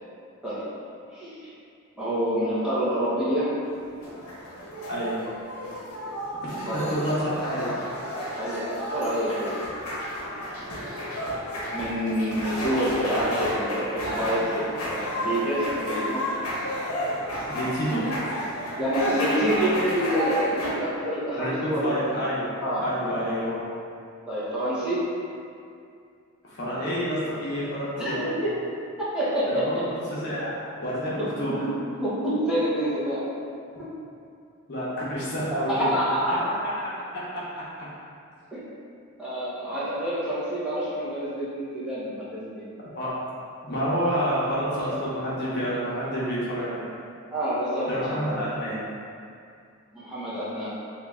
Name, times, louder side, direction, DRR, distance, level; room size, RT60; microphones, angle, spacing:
voice 1, 2.0-3.6 6.7-6.9 8.4-8.6 8.9-9.8 11.7-16.2 18.8-22.0 22.6-22.8 24.3-25.1 28.0-28.5 29.0-29.7 31.2-31.7 32.0-33.2 33.8-33.9 35.5-36.5 38.5-38.6 39.2-42.7 47.3-48.4 49.9-50.7, equal, 5° right, -12 dB, 0.8 m, -27 dB
sound 1, 3.7-20.7, equal, 80° left, 0.8 m, -31 dB
voice 2, 6.4-7.7 17.5-18.1 21.4-22.5 22.8-23.6 26.4-28.3 29.5-31.7 34.7-35.9 37.3-37.6 42.9-43.1 43.6-46.9 47.9-48.8, equal, 50° left, -8 dB, 0.8 m, -29 dB
3.0 x 2.7 x 3.5 m, 2.4 s
head